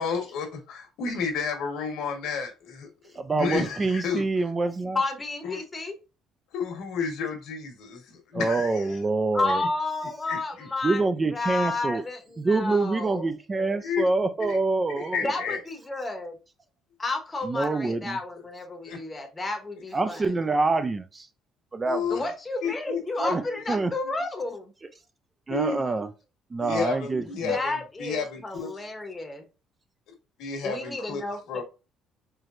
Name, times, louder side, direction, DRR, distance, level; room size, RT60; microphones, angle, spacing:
voice 1, 0.0-2.9 3.3-4.2 5.4-5.6 6.5-9.0 10.3-10.7 13.8-14.1 14.5-14.6 15.0-15.6 18.8-19.0 21.8-22.3 22.6-23.3 25.5-25.8 26.6-27.7 28.0-28.7 30.4-31.2 31.5-31.6, left 5 dB, 80° left, 1.4 m, -31 dB
voice 2, 3.2-5.0 8.3-9.6 10.8-12.0 12.4-15.3 17.4-18.2 19.9-21.3 21.7-22.0 23.2-23.4 23.7-23.9 25.5-26.1 26.5-27.6, right 3 dB, 20° right, 0.4 m, -26 dB
voice 3, 4.9-5.9 9.3-13.2 15.2-16.4 17.0-20.3 22.1-24.7 27.3-29.4 30.6-31.6, left 2 dB, 15° left, 0.9 m, -31 dB
4.5 x 3.1 x 2.5 m
cardioid pair, 145°, 0 cm